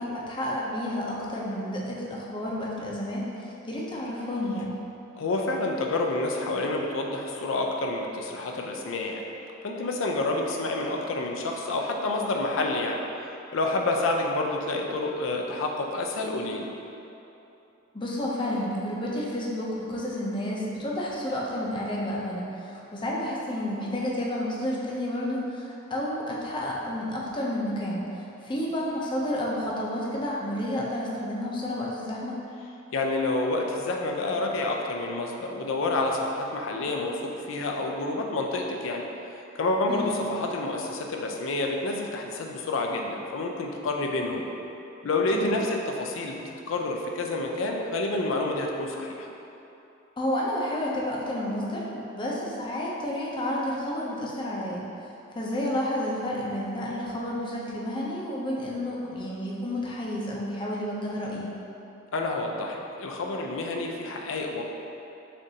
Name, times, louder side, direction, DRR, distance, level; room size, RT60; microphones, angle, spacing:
voice 1, 0.0-4.7 17.9-32.4 39.9-40.1 45.3-45.6 50.2-54.8 55.3-61.5, left 1 dB, 25° left, -4 dB, 0.6 m, -31 dB
voice 2, 5.1-9.2 9.6-13.0 13.3-16.7 32.9-39.0 39.5-44.4 45.0-49.3 62.1-64.6, left 2 dB, 80° left, 1 dB, 0.4 m, -28 dB
6.7 x 2.6 x 2.7 m, 2.9 s
head